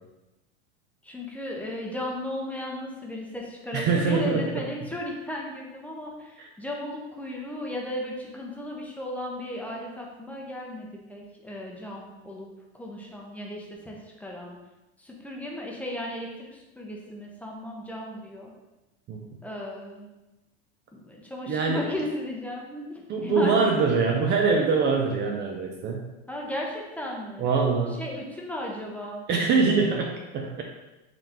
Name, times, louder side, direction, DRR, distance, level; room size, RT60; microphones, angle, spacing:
voice 1, 1.0-12.5 12.7-14.6 15.0-18.5 19.4-20.1 20.9-23.9 26.3-27.5 28.0-29.2, left 1 dB, 5° left, -2 dB, 0.7 m, -35 dB
voice 2, 3.7-4.5 6.4-6.5 19.1-19.2 21.5-21.8 23.1-26.1 27.4-28.0 29.3-30.6, right 4 dB, 35° right, 1 dB, 0.5 m, -24 dB
4.0 x 3.3 x 2.8 m, 1.0 s
hypercardioid pair, 105°, 33 cm